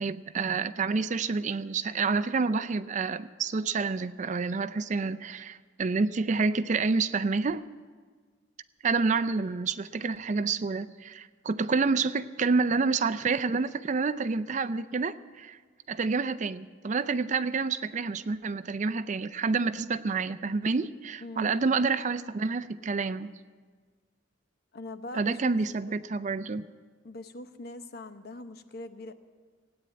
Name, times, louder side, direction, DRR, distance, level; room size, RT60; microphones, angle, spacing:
voice 1, 0.0-7.6 8.8-15.6 15.9-23.3 25.1-26.6, right 4 dB, 40° right, 13 dB, 0.4 m, -28 dB
voice 2, 21.2-21.6 21.9-22.0 24.7-25.6 25.9-26.0 27.0-29.1, left 2 dB, 55° left, 9 dB, 0.9 m, -42 dB
17.0 x 9.0 x 9.3 m, 1.5 s
head